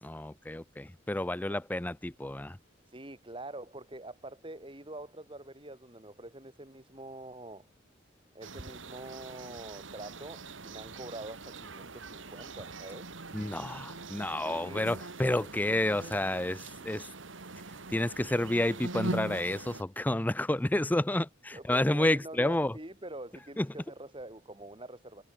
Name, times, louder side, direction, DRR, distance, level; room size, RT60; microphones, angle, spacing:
voice 1, 0.0-2.6 13.3-17.1 17.9-22.7 23.6-23.7, left 1 dB, 10° left, 0.5 m, -30 dB
voice 2, 2.9-7.7 8.3-13.1 14.4-14.9 21.5-25.2, right 1 dB, 25° right, 4.0 m, -45 dB
sound 1, 8.4-19.8, right 2 dB, 90° right, 2.4 m, -42 dB
head